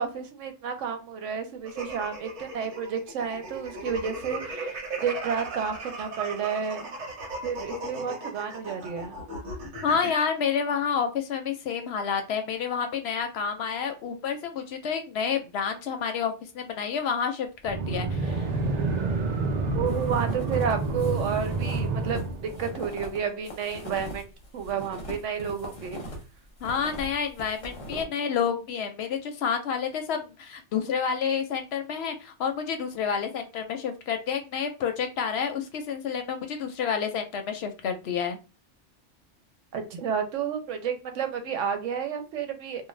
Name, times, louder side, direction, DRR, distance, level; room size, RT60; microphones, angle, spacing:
voice 1, 0.0-6.9 7.4-9.2 19.7-22.2 22.6-26.0 39.7-42.9, right 7 dB, 85° right, 7 dB, 1.0 m, -31 dB
sound 1, 1.7-10.3, right 2 dB, 70° right, 1.1 m, -37 dB
voice 2, 9.8-18.5 26.6-38.4, left 6 dB, 65° left, 6 dB, 0.8 m, -29 dB
sound 2, 17.6-22.9, right 3 dB, 55° right, 0.5 m, -28 dB
sound 3, 19.9-26.2 26.6-28.0, equal, 35° left, 0.8 m, -40 dB
2.4 x 2.2 x 3.1 m, 0.31 s
omnidirectional pair, 1.2 m